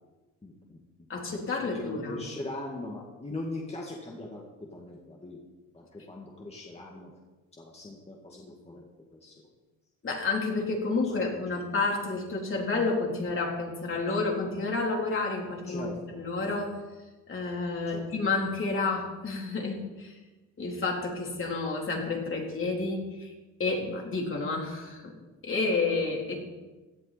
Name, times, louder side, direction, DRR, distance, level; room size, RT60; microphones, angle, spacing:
voice 1, 0.4-0.8 1.6-5.4 5.7-7.1 7.6-8.8 9.1-9.3 11.2-11.3 15.7-16.2 17.9-18.1, left 2 dB, 20° left, -2 dB, 2.4 m, -40 dB
voice 2, 1.1-2.2 10.0-15.9 16.2-16.8 17.3-20.2 20.6-23.3 23.6-25.1 25.4-26.4, left 3 dB, 45° left, -1 dB, 3.9 m, -30 dB
17.5 x 11.0 x 4.3 m, 1.2 s
cardioid pair, 90°, 30 cm